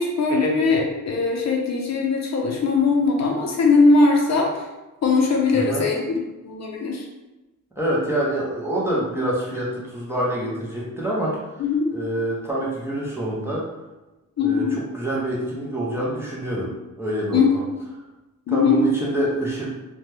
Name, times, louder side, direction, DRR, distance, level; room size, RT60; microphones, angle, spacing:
voice 1, 0.0-4.6 5.0-6.2 6.4-7.1 11.6-11.9 14.4-14.8 17.3-17.5 18.5-18.9, left 4 dB, 55° left, 0 dB, 0.5 m, -20 dB
voice 2, 5.5-5.8 7.8-11.4 11.9-13.7 14.4-16.7 17.0-17.6 18.5-19.7, right 1 dB, 10° right, -6 dB, 0.5 m, -26 dB
2.7 x 2.2 x 3.2 m, 1.1 s
wide cardioid pair, 175°, 32 cm